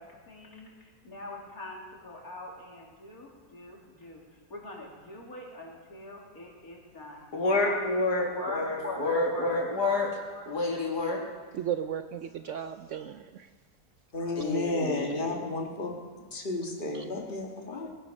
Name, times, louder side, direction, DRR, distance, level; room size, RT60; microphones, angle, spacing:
voice 1, 0.0-4.2 4.5-7.2 8.2-10.4 14.7-15.1, left 2 dB, 65° left, -1 dB, 3.1 m, -42 dB
voice 2, 7.3-10.1 10.5-11.3 14.4-15.6, left 2 dB, 90° left, 0 dB, 2.8 m, -29 dB
voice 3, 11.5-13.5 16.9-17.0, right 9 dB, 65° right, 9 dB, 0.8 m, -35 dB
voice 4, 14.1-15.9 16.3-17.9, left 2 dB, 35° left, 1 dB, 2.0 m, -32 dB
20.0 x 11.0 x 5.4 m, 1.4 s
omnidirectional pair, 1.7 m